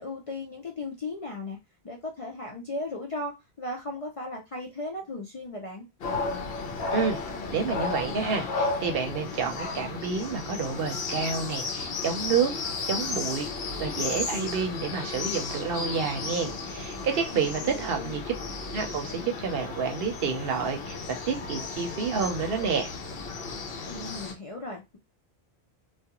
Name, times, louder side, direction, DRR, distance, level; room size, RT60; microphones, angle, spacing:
voice 1, 0.0-1.6 1.8-5.9 17.3-18.2 23.9-25.0, left 2 dB, 45° left, 0.4 m, -36 dB
sound 1, 6.0-24.3, left 4 dB, 70° left, 0.8 m, -34 dB
voice 2, 7.5-12.5 12.9-13.5 13.8-18.3 18.7-22.9, right 5 dB, 65° right, 0.8 m, -29 dB
2.4 x 2.2 x 2.8 m
omnidirectional pair, 1.1 m